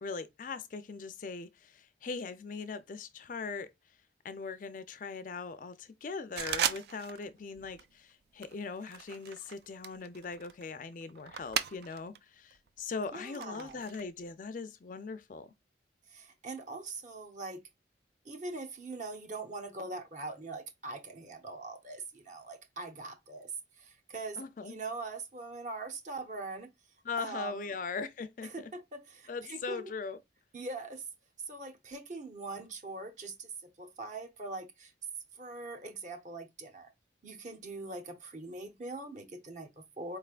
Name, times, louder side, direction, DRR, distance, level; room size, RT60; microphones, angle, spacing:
voice 1, 0.0-4.0 4.2-15.5 24.4-24.8 27.0-28.7 29.3-30.2, left 4 dB, 45° left, 0.4 m, -40 dB
sound 1, 6.4-7.3 7.5-7.9 8.4-12.2 12.5-14.0, right 8 dB, 60° right, 0.4 m, -37 dB
voice 2, 13.1-13.8 16.1-17.6 18.2-26.7 27.2-27.7 28.4-29.9 30.5-31.1 31.5-33.5 33.8-34.9 35.3-36.9 37.2-40.2, right 3 dB, 40° right, 0.9 m, -42 dB
4.4 x 3.3 x 2.4 m
head